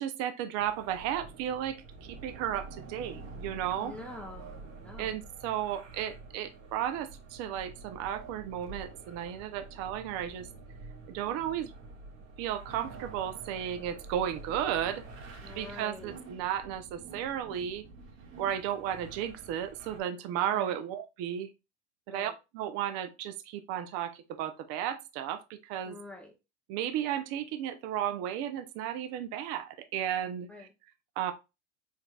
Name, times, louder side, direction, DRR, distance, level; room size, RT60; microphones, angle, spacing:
voice 1, 0.0-1.8 2.2-3.9 5.0-10.5 11.1-11.7 12.4-15.0 15.6-17.9 18.4-21.5 22.1-26.0 26.7-30.7 31.2-31.3, right 10 dB, 45° right, 0.6 m, -34 dB
sound 1, 0.6-20.0, right 3 dB, 70° right, 1.9 m, -48 dB
voice 2, 3.8-5.2 15.4-16.2 20.5-20.8 22.1-22.3 25.9-26.3 30.5-30.7, left 2 dB, 5° left, 0.6 m, -46 dB
5.0 x 4.4 x 2.3 m
supercardioid pair, 140°, 36 cm